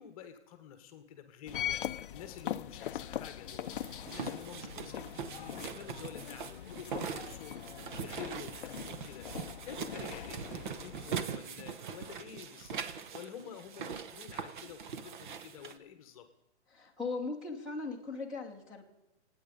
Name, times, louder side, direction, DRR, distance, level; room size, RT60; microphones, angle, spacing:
voice 1, 0.0-16.3, left 9 dB, 30° left, 9 dB, 1.2 m, -49 dB
sound 1, 1.5-11.3, left 11 dB, 50° left, 0.5 m, -41 dB
sound 2, 3.5-15.8, right 7 dB, 45° right, 1.0 m, -42 dB
voice 2, 16.7-18.8, left 3 dB, ahead, -1 dB, 1.2 m, -38 dB
26.0 x 9.2 x 5.3 m, 0.93 s
hypercardioid pair, 155°, 34 cm